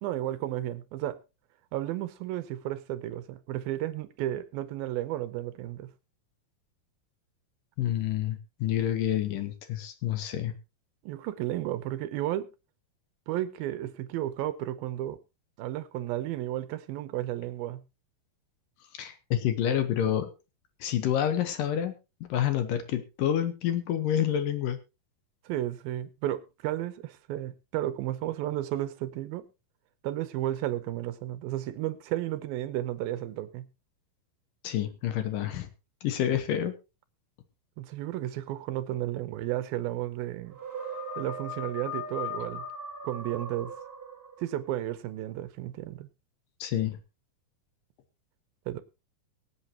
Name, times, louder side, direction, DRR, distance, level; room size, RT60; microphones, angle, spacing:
voice 1, 0.0-1.2 1.7-5.9 11.0-12.5 13.3-15.2 15.6-17.8 25.4-29.5 30.0-33.7 37.8-40.6 41.2-42.7 43.0-43.7 44.4-46.1 48.7-48.8, right 14 dB, 80° right, 2.5 m, -33 dB
voice 2, 7.8-10.5 18.9-20.3 20.8-21.9 22.3-24.8 34.6-35.7 36.0-36.7 46.6-47.0, left 10 dB, 70° left, 2.5 m, -28 dB
sound 1, 40.5-44.6, left 1 dB, 15° right, 3.6 m, -38 dB
24.0 x 8.2 x 2.9 m
omnidirectional pair, 4.4 m